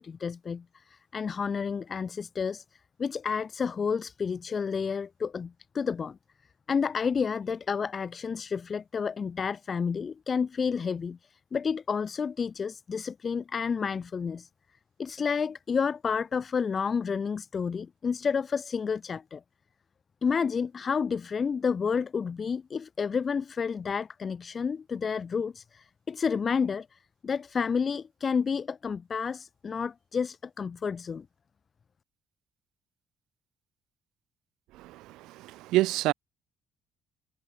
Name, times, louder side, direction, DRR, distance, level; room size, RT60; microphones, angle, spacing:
voice 1, 0.0-2.6 3.0-6.2 6.7-14.5 15.0-19.4 20.2-31.3, left 6 dB, 40° left, 1.8 m, -30 dB
voice 2, 34.8-36.1, right 17 dB, 85° right, 1.5 m, -28 dB
cardioid pair, 95°, 0 cm